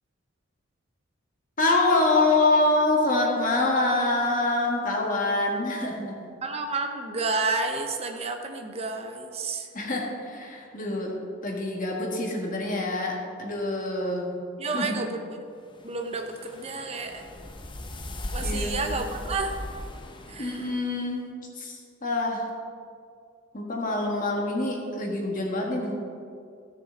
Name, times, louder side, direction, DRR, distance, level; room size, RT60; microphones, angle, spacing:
voice 1, 1.6-6.1 9.7-11.1 11.4-14.4 14.6-15.0 18.4-19.0 20.4-21.2 21.6-22.5 23.5-25.9, left 2 dB, 40° left, -1 dB, 1.7 m, -25 dB
voice 2, 6.4-9.7 14.6-15.4 15.8-17.2 18.3-19.6 20.3-20.7, right 3 dB, 30° right, 5 dB, 0.7 m, -30 dB
sound 1, 15.7-21.0, left 1 dB, 25° left, 0.8 m, -37 dB
16.0 x 6.8 x 4.0 m, 2.3 s
head